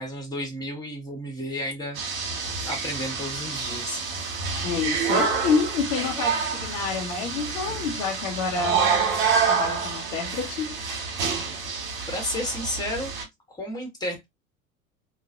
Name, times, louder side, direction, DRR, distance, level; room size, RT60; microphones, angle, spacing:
voice 1, 0.0-2.3 2.6-4.0 12.1-13.1 13.5-14.2, left 1 dB, 10° left, 1.5 m, -32 dB
sound 1, 1.9-13.2, right 5 dB, 55° right, 1.5 m, -28 dB
voice 2, 4.6-8.8 9.5-10.7, left 5 dB, 65° left, 1.0 m, -28 dB
3.0 x 2.5 x 2.5 m
figure-of-eight pair, 75°, 41 cm